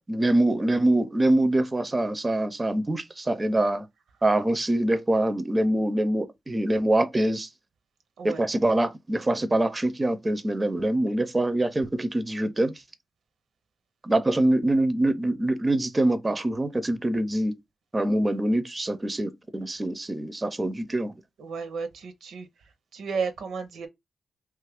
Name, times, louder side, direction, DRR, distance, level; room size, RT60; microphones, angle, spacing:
voice 1, 0.1-3.9 4.2-7.5 8.2-12.7 14.0-17.5 17.9-21.1, right 1 dB, 25° right, 0.4 m, -24 dB
voice 2, 21.4-22.5 22.9-23.9, right 5 dB, 85° right, 0.6 m, -33 dB
2.9 x 2.4 x 3.3 m
cardioid pair, 65°, 0 cm